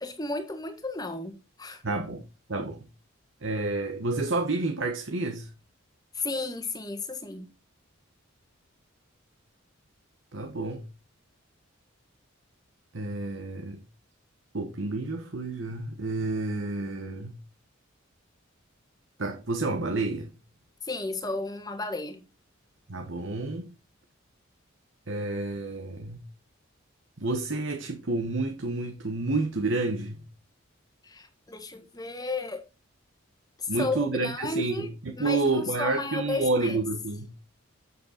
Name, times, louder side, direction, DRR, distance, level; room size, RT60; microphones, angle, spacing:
voice 1, 0.0-1.8 6.1-7.5 20.8-22.2 31.0-32.6 33.6-36.8, left 3 dB, 20° left, 1.5 m, -33 dB
voice 2, 1.8-2.2 2.5-2.8 3.4-5.5 10.3-10.8 12.9-13.8 14.5-17.4 19.2-20.3 22.9-23.7 25.1-26.2 27.2-30.2 33.7-37.3, right 2 dB, 65° right, 1.2 m, -29 dB
8.3 x 7.5 x 4.4 m
head